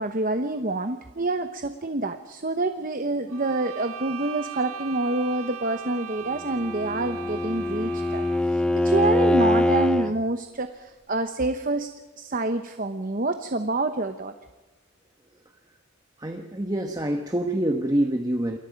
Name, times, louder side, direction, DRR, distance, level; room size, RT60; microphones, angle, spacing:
voice 1, 0.0-11.9 12.2-14.3, right 2 dB, 40° right, 8 dB, 0.9 m, -27 dB
sound 1, 3.3-8.6, right 9 dB, 80° right, 1.7 m, -39 dB
Bowed string instrument, 6.4-10.1, left 1 dB, 5° left, 0.6 m, -23 dB
voice 2, 16.2-18.6, right 1 dB, 15° right, 5 dB, 1.1 m, -26 dB
28.5 x 21.5 x 5.3 m, 1.3 s
head